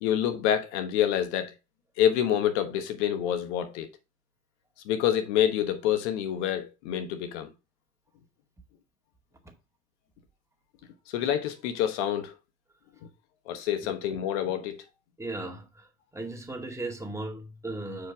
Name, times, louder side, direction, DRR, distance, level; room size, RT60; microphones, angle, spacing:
voice 1, 0.0-1.5 2.0-3.9 4.8-7.5 11.1-12.3 13.5-14.8, left 10 dB, 75° left, 1.2 m, -27 dB
voice 2, 15.2-18.1, right 2 dB, 10° right, 2.0 m, -37 dB
6.8 x 4.9 x 3.5 m
hypercardioid pair, 60°, 35 cm